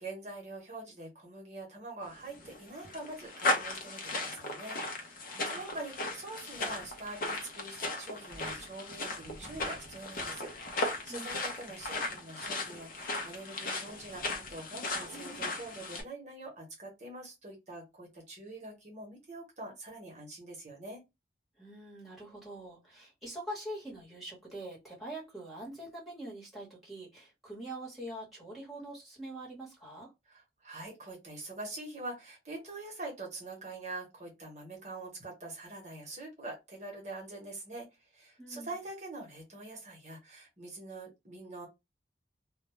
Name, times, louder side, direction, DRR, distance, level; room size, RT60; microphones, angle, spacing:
voice 1, 0.0-21.0 30.3-41.7, right 2 dB, 40° right, 0.9 m, -45 dB
sound 1, 2.2-16.0, left 2 dB, 50° left, 0.6 m, -37 dB
voice 2, 5.2-5.6 11.1-11.5 21.6-30.1 38.4-38.8, right 1 dB, ahead, 1.0 m, -44 dB
2.2 x 2.1 x 3.0 m
head